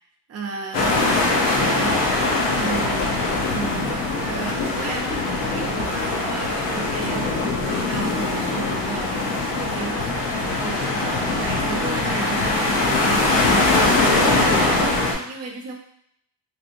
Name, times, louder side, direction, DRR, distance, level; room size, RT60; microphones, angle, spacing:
voice 1, 0.3-1.0 1.3-2.2 2.5-3.1 3.4-9.1 9.5-15.8, right 5 dB, 35° right, -1 dB, 0.6 m, -34 dB
sound 1, 0.7-15.1, left 2 dB, 75° left, 0.9 m, -22 dB
3.4 x 2.7 x 2.6 m, 0.70 s
cardioid pair, 160°, 44 cm